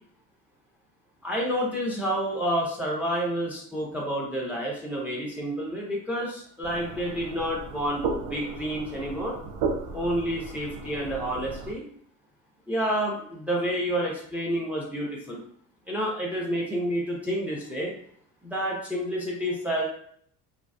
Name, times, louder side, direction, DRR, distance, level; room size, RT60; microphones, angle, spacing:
voice 1, 1.2-9.4 9.9-11.8 12.7-15.4 15.9-17.9 18.4-19.9, equal, 5° right, -2 dB, 0.6 m, -29 dB
sound 1, 6.6-11.7, right 4 dB, 55° right, 0.6 m, -35 dB
2.4 x 2.4 x 2.2 m, 0.63 s
hypercardioid pair, 55°, 46 cm